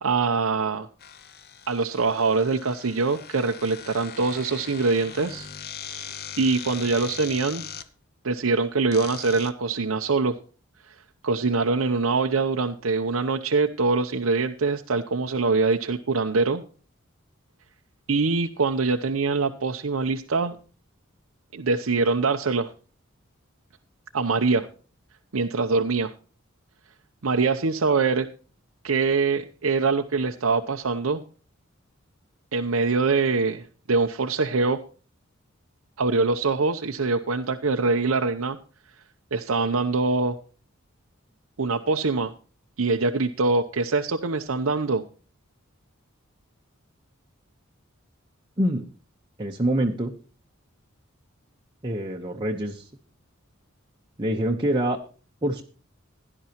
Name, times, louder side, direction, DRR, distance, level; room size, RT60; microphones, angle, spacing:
voice 1, 0.0-0.9 1.7-5.5 6.4-7.7 8.2-10.3 10.9-11.0 11.2-16.6 18.1-20.6 21.5-22.7 24.1-24.7 25.3-26.1 27.2-28.3 28.8-31.2 32.5-34.8 36.0-38.6 39.3-40.4 41.6-42.3 42.8-45.0, right 4 dB, 90° right, 4 dB, 0.8 m, -24 dB
sound 1, 1.0-7.9 8.9-9.5, left 8 dB, 50° left, 0.9 m, -40 dB
voice 2, 48.6-48.9 49.4-50.1 51.8-52.9 54.2-55.0 55.4-55.6, right 1 dB, 25° right, 1 dB, 1.1 m, -25 dB
17.0 x 11.0 x 3.0 m, 0.37 s
head